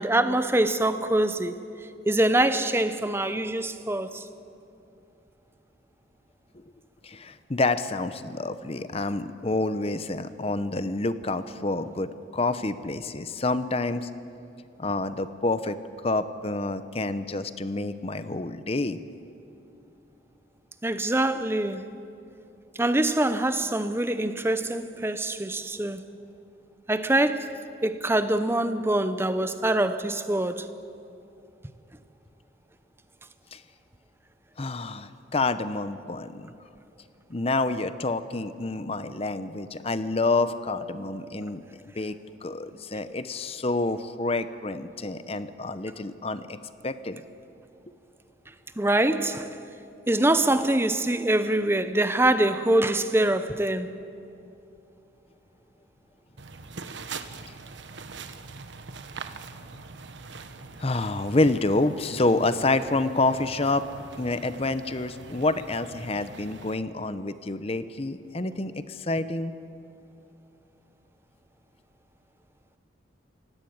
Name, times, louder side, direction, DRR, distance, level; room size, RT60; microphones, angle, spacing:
voice 1, 0.0-1.5 2.1-4.2 20.8-21.9 22.8-26.0 26.9-30.7 48.8-49.6 50.1-53.9, right 1 dB, 15° right, 0.7 m, -24 dB
voice 2, 7.0-14.1 14.8-15.8 16.0-19.0 33.5-33.6 34.6-36.5 37.3-41.6 41.9-42.2 42.4-46.6 46.8-47.2 60.8-63.9 64.2-69.5, left 2 dB, 30° left, 0.7 m, -28 dB
sound 1, 56.4-66.8, right 4 dB, 75° right, 1.2 m, -43 dB
28.0 x 17.0 x 8.7 m
head